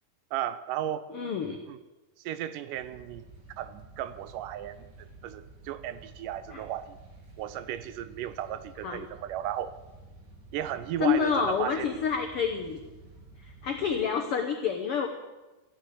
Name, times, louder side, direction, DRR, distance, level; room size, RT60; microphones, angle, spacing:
voice 1, 0.3-1.1 1.7-1.8 2.2-3.3 3.6-7.0 7.4-9.7 10.5-12.0, right 11 dB, 80° right, 14 dB, 2.1 m, -35 dB
voice 2, 1.1-1.6 6.5-6.6 8.8-9.0 11.0-12.8 13.4-15.1, left 6 dB, 75° left, 5 dB, 1.3 m, -28 dB
sound 1, 2.7-14.0, right 2 dB, 35° right, 2.2 m, -51 dB
14.5 x 10.5 x 7.8 m, 1.1 s
omnidirectional pair, 4.0 m